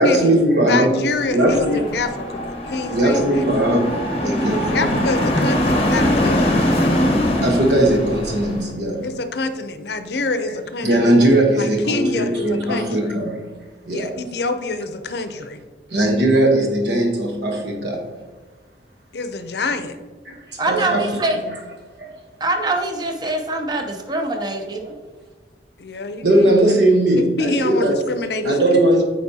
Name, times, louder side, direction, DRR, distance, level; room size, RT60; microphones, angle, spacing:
voice 1, 0.0-1.0 1.3-1.8 2.9-5.0 6.0-6.1 6.5-6.6 7.4-9.1 10.8-13.5 13.8-14.1 15.9-18.0 20.3-21.2 22.0-22.1 24.4-24.5 24.8-24.9 26.2-28.0 28.4-29.0, right 1 dB, 75° right, 1.1 m, -19 dB
voice 2, 0.6-3.4 4.7-6.6 8.9-11.1 11.6-13.1 13.9-15.6 19.1-20.0 25.8-26.7 27.4-28.8, left 3 dB, 65° left, 0.6 m, -26 dB
sound 1, 1.2-8.7, left 1 dB, 35° left, 0.8 m, -22 dB
voice 3, 20.6-21.4 22.4-25.0, right 2 dB, 25° right, 0.7 m, -23 dB
8.2 x 4.6 x 2.8 m
head